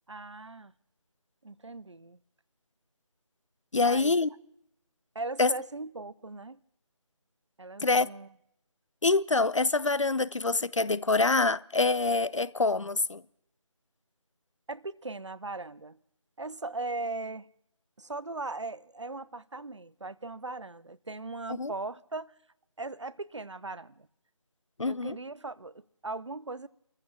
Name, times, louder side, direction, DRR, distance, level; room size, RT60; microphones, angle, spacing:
voice 1, 0.1-0.7 1.4-2.2 3.8-4.1 5.1-6.6 7.6-8.3 14.7-16.0 16.4-17.5 18.0-22.3 22.8-24.1 24.8-26.7, right 3 dB, 60° right, 0.7 m, -39 dB
voice 2, 3.7-4.3 5.4-5.5 7.8-8.1 9.0-13.2 21.5-21.7 24.8-25.2, left 3 dB, 65° left, 0.6 m, -25 dB
29.0 x 14.5 x 2.9 m
figure-of-eight pair, 165°, 17 cm